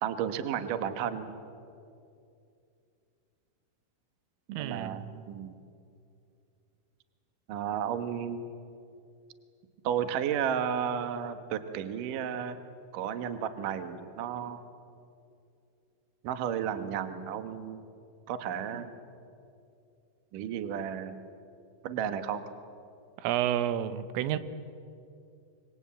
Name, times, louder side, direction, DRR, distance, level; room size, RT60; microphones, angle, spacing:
voice 1, 0.0-1.3 4.6-5.6 7.5-8.4 9.8-12.6 12.9-14.6 16.2-17.8 18.3-18.9 20.3-21.3 21.8-22.4, right 8 dB, 70° right, 10 dB, 2.0 m, -33 dB
voice 2, 4.5-5.0 23.2-24.4, right 11 dB, 90° right, 13 dB, 3.6 m, -30 dB
25.0 x 25.0 x 8.7 m, 2.5 s
omnidirectional pair, 5.7 m